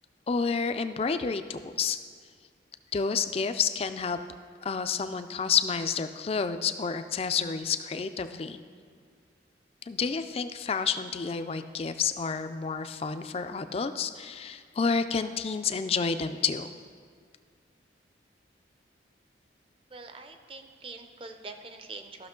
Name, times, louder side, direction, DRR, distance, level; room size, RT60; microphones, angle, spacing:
voice 1, 0.3-2.0 2.9-4.2 4.6-8.6 9.9-16.7, left 5 dB, 30° left, 10 dB, 0.3 m, -29 dB
voice 2, 19.9-22.3, right 3 dB, 30° right, 7 dB, 0.6 m, -44 dB
14.0 x 6.1 x 3.7 m, 2.1 s
head